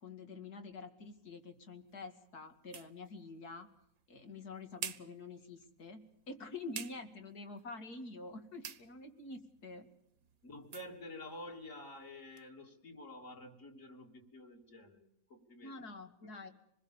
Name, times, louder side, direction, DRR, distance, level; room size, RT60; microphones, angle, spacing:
voice 1, 0.0-3.7 4.1-9.9 15.6-16.5, left 3 dB, 90° left, 7 dB, 2.8 m, -47 dB
sound 1, 1.0-12.5, right 7 dB, 70° right, 1.6 m, -52 dB
voice 2, 10.4-15.8 16.2-16.4, left 1 dB, 55° left, 2 dB, 3.7 m, -50 dB
26.5 x 21.0 x 7.1 m, 0.74 s
omnidirectional pair, 1.6 m